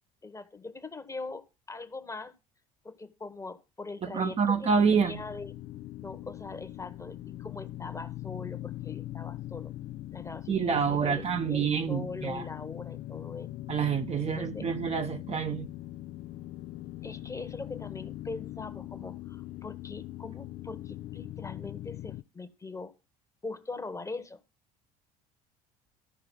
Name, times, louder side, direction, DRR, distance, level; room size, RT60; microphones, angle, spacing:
voice 1, 0.2-2.3 2.8-5.5 6.0-9.7 10.1-13.8 14.2-14.7 17.0-22.9 23.4-24.4, left 3 dB, 15° left, 1.2 m, -42 dB
voice 2, 4.0-5.2 10.5-12.4 13.7-15.7, right 6 dB, 35° right, 0.8 m, -27 dB
sound 1, 4.7-22.2, left 15 dB, 45° left, 0.4 m, -41 dB
13.5 x 5.4 x 3.8 m
hypercardioid pair, 65°, 19 cm